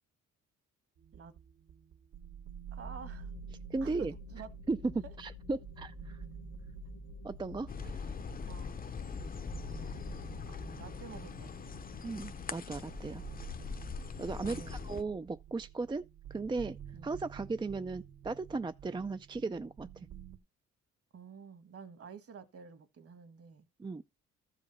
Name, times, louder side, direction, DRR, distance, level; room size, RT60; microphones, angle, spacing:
sound 1, 1.0-20.4, right 9 dB, 70° right, 1.6 m, -50 dB
voice 1, 2.7-3.3 3.8-4.5 5.0-5.1 8.2-8.8 10.4-11.8 14.4-14.8 16.9-17.2 21.1-23.7, right 6 dB, 50° right, 1.7 m, -50 dB
sound 2, 2.8-12.5, left 10 dB, 85° left, 1.2 m, -51 dB
voice 2, 3.7-4.1 4.7-6.2 7.2-8.1 12.0-13.2 14.2-16.0 16.3-20.1 23.8-24.0, right 3 dB, 15° right, 0.4 m, -36 dB
sound 3, 7.7-15.0, left 6 dB, 30° left, 0.8 m, -42 dB
13.5 x 5.0 x 5.4 m
cardioid pair, 90°, 30 cm